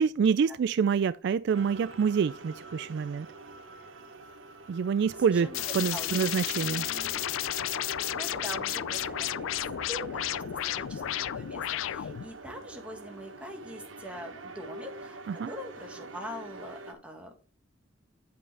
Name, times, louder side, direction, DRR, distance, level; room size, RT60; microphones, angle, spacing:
voice 1, 0.0-3.3 4.7-6.9 15.3-15.5, right 6 dB, 60° right, 0.3 m, -27 dB
sound 1, 1.5-16.9, right 2 dB, 85° right, 1.2 m, -44 dB
voice 2, 5.2-5.6 5.9-6.2 6.6-7.2 8.1-9.4 9.9-15.2 15.5-17.3, equal, 5° right, 1.9 m, -43 dB
sound 2, 5.5-12.3, left 12 dB, 90° left, 0.4 m, -33 dB
8.7 x 7.7 x 3.4 m
head